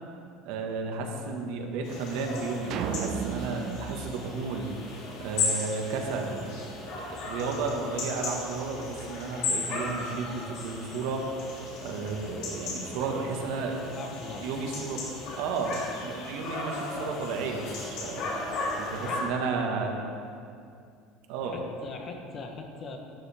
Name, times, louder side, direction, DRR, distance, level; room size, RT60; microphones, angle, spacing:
voice 1, 0.4-4.7 5.2-11.2 11.8-13.8 14.4-15.0 15.4-18.2 18.8-20.0 21.3-21.5, right 4 dB, 70° right, 1 dB, 1.6 m, -33 dB
sound 1, 1.8-19.2, left 3 dB, 55° left, 3.1 m, -36 dB
sound 2, 2.7-5.2, right 6 dB, 45° right, 0.7 m, -34 dB
voice 2, 13.9-14.7 19.0-19.3 21.4-23.0, left 3 dB, 30° left, 3 dB, 1.1 m, -41 dB
13.0 x 12.0 x 3.6 m, 2.4 s
cardioid pair, 165°, 0 cm